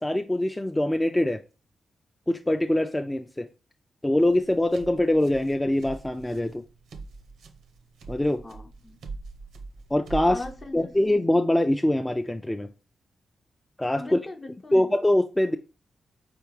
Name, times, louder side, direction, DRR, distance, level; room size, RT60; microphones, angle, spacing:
voice 1, 0.0-1.4 2.3-3.5 4.0-6.6 8.1-8.4 9.9-10.4 10.7-12.7 13.8-14.2 14.7-15.6, left 1 dB, 15° left, 0.3 m, -23 dB
sound 1, 4.2-11.1, right 3 dB, 90° right, 0.6 m, -42 dB
voice 2, 8.4-9.0 10.3-10.9 14.0-14.9, left 2 dB, 40° left, 0.8 m, -39 dB
4.3 x 3.5 x 3.0 m
cardioid pair, 65°, 0 cm